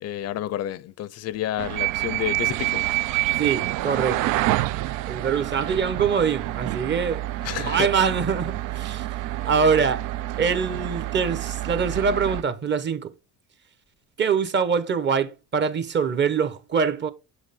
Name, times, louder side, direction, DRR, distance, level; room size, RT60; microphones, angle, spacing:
voice 1, 0.0-2.8 7.4-7.9, left 12 dB, 55° left, 0.5 m, -30 dB
sound 1, 1.6-12.4, right 17 dB, 85° right, 0.5 m, -28 dB
voice 2, 3.4-4.2 5.1-7.2 7.6-9.1 9.4-10.0 10.4-13.1 14.2-17.1, right 6 dB, 35° right, 1.0 m, -24 dB
8.5 x 6.4 x 3.6 m
cardioid pair, 125°, 30 cm